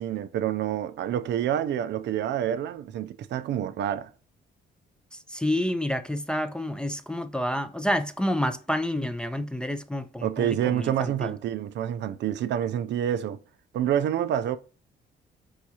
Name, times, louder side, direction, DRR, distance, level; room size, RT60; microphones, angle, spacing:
voice 1, 0.0-4.1 10.2-13.4 13.7-14.6, right 10 dB, 65° right, 0.4 m, -27 dB
voice 2, 5.1-11.3, left 1 dB, 5° left, 0.4 m, -29 dB
4.8 x 3.4 x 2.8 m
cardioid pair, 90°, 20 cm